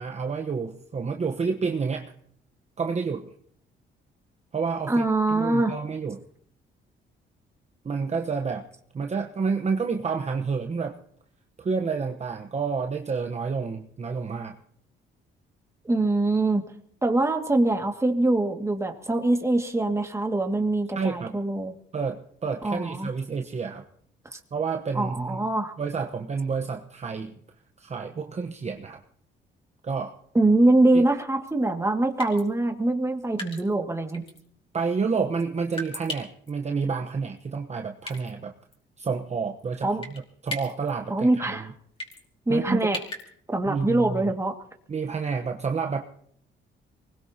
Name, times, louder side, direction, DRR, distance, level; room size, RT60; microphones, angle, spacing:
voice 1, 0.0-2.1 2.8-3.3 4.5-6.2 7.8-8.7 8.9-11.0 11.6-14.6 20.9-21.4 21.9-23.8 24.5-25.4 25.8-27.4 27.8-29.0 29.8-30.1 30.9-31.0 34.7-38.5 39.0-39.9 40.4-41.7 42.5-42.8 43.7-44.3 44.9-46.0, right 5 dB, 35° right, 4 dB, 1.1 m, -29 dB
voice 2, 4.9-5.7 15.8-16.6 17.0-21.7 22.6-23.1 24.2-24.4 24.9-25.7 30.3-34.2 39.8-40.0 41.1-41.7 42.5-43.0 43.5-44.6, right 2 dB, 15° right, 3 dB, 2.1 m, -23 dB
sound 1, 31.5-31.6 32.2-32.4 33.4-33.7 34.1-34.4 35.7-36.5 38.0-38.3 38.7-38.8 40.0-40.2 40.5-40.9 42.0-42.2 42.9-43.2, left 1 dB, 25° left, 4.9 m, -36 dB
24.0 x 20.5 x 2.9 m, 0.63 s
cardioid pair, 90°, 20 cm